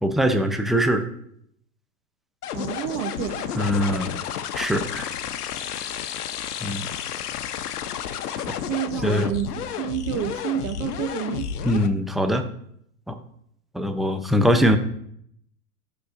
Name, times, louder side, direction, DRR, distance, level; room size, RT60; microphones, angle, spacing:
voice 1, 0.0-1.0 3.6-4.2 4.5-5.1 6.6-6.9 9.0-9.3 11.6-12.4 13.1-13.2 13.7-14.8, equal, ahead, 0.6 m, -22 dB
sound 1, 2.4-11.9, left 9 dB, 85° left, 0.8 m, -31 dB
voice 2, 2.5-3.6 8.7-11.5 14.4-14.8, right 11 dB, 35° right, 0.9 m, -29 dB
13.5 x 6.6 x 2.6 m
hypercardioid pair, 120°, 45 cm